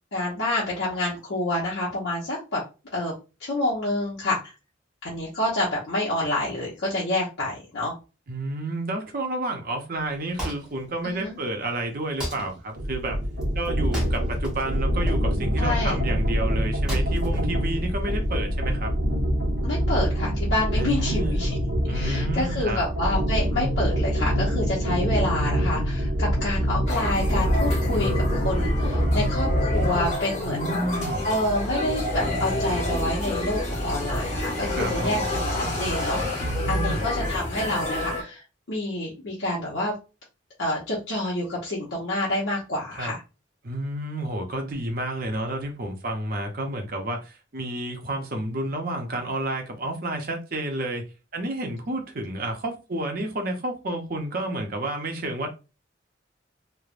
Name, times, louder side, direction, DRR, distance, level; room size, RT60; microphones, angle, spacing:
voice 1, 0.1-2.6 2.9-3.1 3.4-4.5 5.0-7.9 11.0-11.3 15.6-16.0 19.6-21.6 21.9-30.8 31.2-39.9 40.6-43.2, left 1 dB, 70° left, 0.8 m, -28 dB
voice 2, 8.3-13.2 13.6-18.9 20.7-21.4 21.9-22.8 30.4-31.3 34.8-35.3 36.6-37.1 42.9-43.1 43.6-51.0 51.3-55.5, right 1 dB, 50° right, 0.6 m, -30 dB
Wood, 10.0-18.3, right 1 dB, 5° right, 0.9 m, -38 dB
sound 1, 12.8-30.2, equal, 85° right, 0.9 m, -25 dB
sound 2, 26.9-38.2, left 1 dB, 35° left, 1.3 m, -28 dB
3.2 x 2.1 x 2.4 m
head